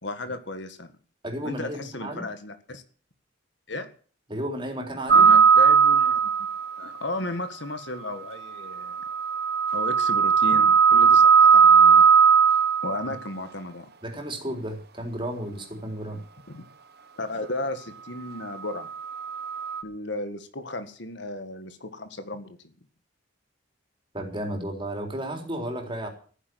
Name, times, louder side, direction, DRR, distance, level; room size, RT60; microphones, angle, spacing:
voice 1, 0.0-0.9 1.4-2.8 3.7-3.9 5.1-6.2 6.8-9.0 9.7-12.2 12.8-13.9 16.5-16.6 17.2-18.9 19.8-22.7, left 2 dB, 60° left, 9 dB, 1.7 m, -34 dB
voice 2, 1.2-2.3 4.3-5.3 13.0-13.1 14.0-16.2 24.1-26.1, right 1 dB, 25° right, 3 dB, 3.9 m, -33 dB
sound 1, 5.1-6.7 8.7-13.1 19.0-19.8, right 6 dB, 50° right, 1.2 m, -18 dB
15.0 x 10.0 x 7.9 m, 0.42 s
head